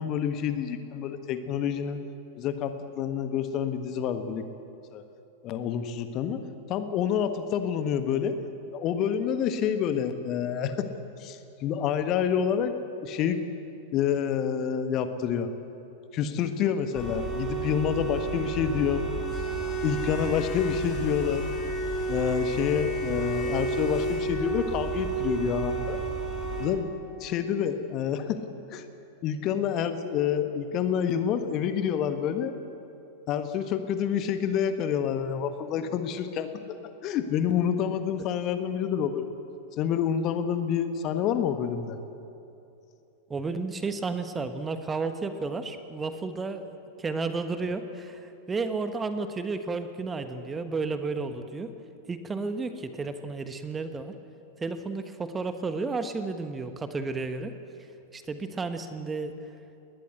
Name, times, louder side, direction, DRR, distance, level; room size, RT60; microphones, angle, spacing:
voice 1, 0.0-2.0 2.4-4.4 4.9-5.0 5.4-6.4 6.7-8.3 8.7-10.9 11.2-12.7 13.0-13.4 13.9-15.5 16.1-19.0 19.8-21.4 22.1-26.0 26.6-26.9 27.2-28.4 28.7-28.8 29.2-32.5 33.3-39.3 39.8-42.0, left 8 dB, 35° left, 9 dB, 1.4 m, -28 dB
sound 1, 16.9-26.7, right 3 dB, 20° left, 6.1 m, -31 dB
voice 2, 43.3-46.7 47.0-51.7 52.1-54.1 54.6-57.5 58.1-59.3, right 4 dB, 15° right, 9 dB, 1.3 m, -32 dB
20.5 x 20.0 x 8.2 m, 2.8 s
figure-of-eight pair, 90°, 0 cm